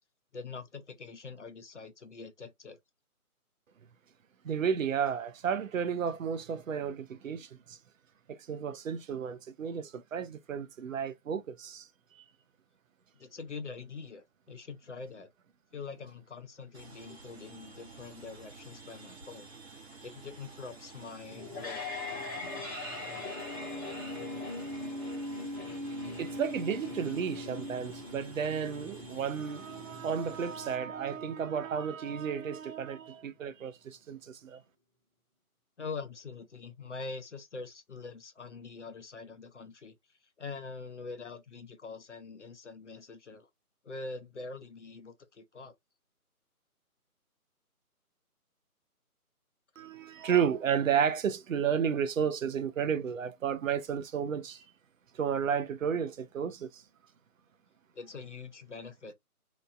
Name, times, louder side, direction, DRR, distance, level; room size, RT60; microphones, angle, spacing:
voice 1, 0.3-2.8 13.1-15.3 15.7-19.5 20.0-21.9 35.8-40.0 40.4-43.5 43.8-45.7 57.9-59.1, left 4 dB, 55° left, 0.6 m, -44 dB
voice 2, 4.4-7.8 8.3-11.9 26.2-34.6 49.8-54.6 55.1-56.8, right 7 dB, 60° right, 0.5 m, -32 dB
sound 1, 16.7-30.8, right 3 dB, 45° right, 0.9 m, -51 dB
sound 2, 21.3-32.3, left 2 dB, 15° right, 0.8 m, -40 dB
2.9 x 2.2 x 2.3 m
figure-of-eight pair, 155°, 45 cm